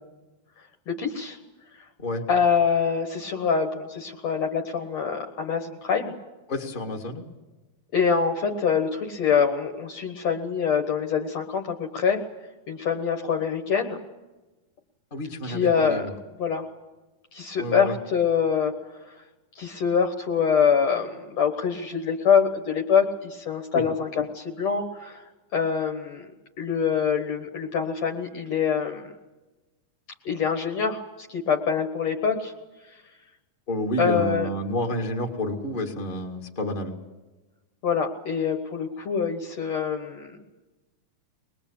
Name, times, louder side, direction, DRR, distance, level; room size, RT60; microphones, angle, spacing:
voice 1, 0.9-1.4 2.3-6.1 7.9-12.2 12.7-14.0 15.4-16.1 16.4-16.7 17.3-18.7 19.1-19.2 19.6-26.3 26.6-29.1 30.3-32.5 34.0-34.5 37.8-40.4, left 6 dB, 55° left, 3 dB, 2.1 m, -25 dB
voice 2, 6.5-7.2 15.1-16.1 17.6-17.9 23.7-23.8 33.7-37.0, left 1 dB, 20° left, 1 dB, 1.7 m, -29 dB
23.5 x 21.0 x 8.5 m, 1.1 s
omnidirectional pair, 4.2 m